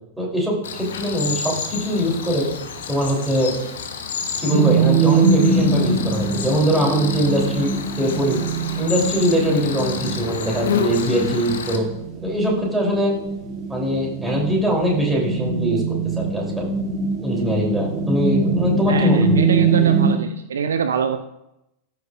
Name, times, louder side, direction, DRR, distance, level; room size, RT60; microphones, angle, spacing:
voice 1, 0.2-2.5 2.9-3.5 4.4-8.4 8.8-11.9 12.2-13.2 13.7-15.8 16.2-16.7 17.2-19.3, equal, 5° right, -3 dB, 3.7 m, -22 dB
Cricket, 0.6-11.8, left 6 dB, 65° left, 1.1 m, -30 dB
sound 1, 4.5-20.2, right 4 dB, 35° right, 1.6 m, -22 dB
voice 2, 18.9-21.2, right 6 dB, 65° right, 9 dB, 0.5 m, -25 dB
14.5 x 6.6 x 2.6 m, 0.86 s
figure-of-eight pair, 90°, 0 cm